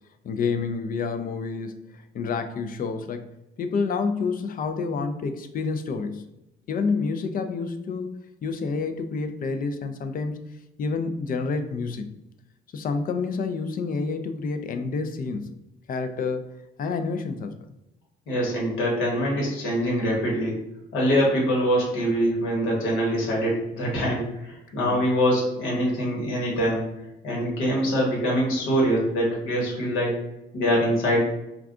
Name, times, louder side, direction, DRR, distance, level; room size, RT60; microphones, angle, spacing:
voice 1, 0.2-3.3 3.6-6.2 6.7-10.4 10.8-12.1 12.7-15.5 15.9-17.7 24.8-25.0, left 4 dB, 45° left, 8 dB, 0.4 m, -29 dB
voice 2, 18.3-20.6 20.9-26.8 27.2-30.2 30.5-31.2, equal, 85° left, -3 dB, 1.2 m, -24 dB
2.4 x 2.3 x 3.6 m, 0.90 s
cardioid pair, 90°, 20 cm